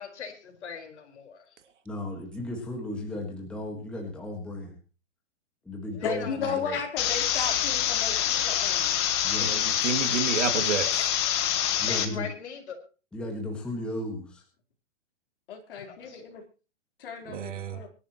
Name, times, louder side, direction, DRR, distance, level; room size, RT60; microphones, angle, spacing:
voice 1, 0.0-1.4 6.0-6.6 11.9-12.8 15.7-16.2, left 7 dB, 65° left, 4 dB, 4.8 m, -39 dB
voice 2, 1.8-4.7 5.6-6.8 9.2-9.5 11.8-12.3 13.1-14.4, left 1 dB, 5° left, 0 dB, 1.6 m, -35 dB
voice 3, 6.0-9.0 15.5-16.4 17.0-17.9, left 5 dB, 45° left, 3 dB, 4.0 m, -34 dB
sound 1, 7.0-12.0, left 10 dB, 20° left, 1.3 m, -26 dB
voice 4, 9.4-11.1 17.2-17.8, right 7 dB, 75° right, 8 dB, 2.7 m, -30 dB
24.5 x 11.5 x 3.0 m, 0.35 s
hypercardioid pair, 175°, 37 cm